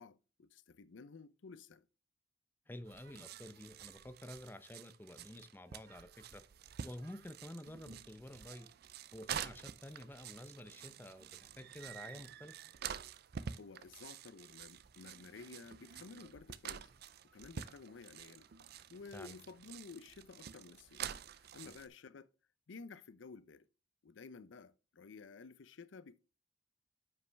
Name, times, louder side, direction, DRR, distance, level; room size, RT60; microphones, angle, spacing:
voice 1, 0.0-1.9 13.4-16.9 17.3-18.5 18.9-21.0 21.3-22.3 22.7-23.7 24.0-26.2, left 4 dB, 90° left, 0.6 m, -53 dB
voice 2, 2.7-6.4 6.8-8.7 9.1-12.6 19.1-19.4 21.6-21.8, left 1 dB, 10° left, 0.6 m, -50 dB
sound 1, 2.9-21.9, right 8 dB, 55° right, 0.5 m, -48 dB
9.6 x 5.4 x 3.3 m
head